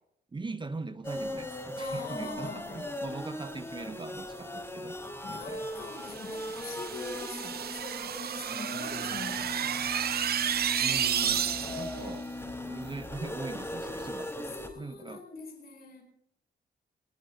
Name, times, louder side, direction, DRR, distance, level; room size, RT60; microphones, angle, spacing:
voice 1, 0.3-5.0 5.3-5.6 10.8-12.2 12.6-14.3 14.7-15.3, right 3 dB, 25° right, 0.8 m, -41 dB
sound 1, 1.0-14.7, left 1 dB, 15° left, 4.7 m, -39 dB
voice 2, 1.7-2.9 5.2-10.0 10.8-12.2 14.4-16.0, left 3 dB, 65° left, 4.8 m, -43 dB
sound 2, 6.0-12.0, right 9 dB, 65° right, 0.6 m, -31 dB
22.0 x 17.5 x 2.8 m
cardioid pair, 65°, 17 cm